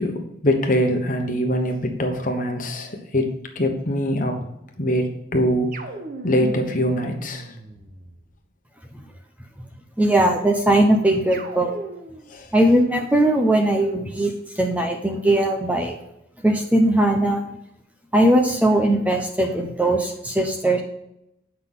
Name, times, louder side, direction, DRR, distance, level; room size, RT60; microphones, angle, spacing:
voice 1, 0.0-3.3 3.5-4.4 4.8-5.7 6.2-7.5 12.3-12.5, equal, 45° left, 4 dB, 1.1 m, -23 dB
sound 1, 5.7-8.2 11.3-12.3, right 2 dB, 45° right, 0.8 m, -36 dB
voice 2, 10.0-11.7 12.5-15.9 16.4-17.4 18.1-20.8, right 1 dB, 10° right, 3 dB, 0.7 m, -19 dB
7.9 x 5.8 x 3.7 m, 0.82 s
head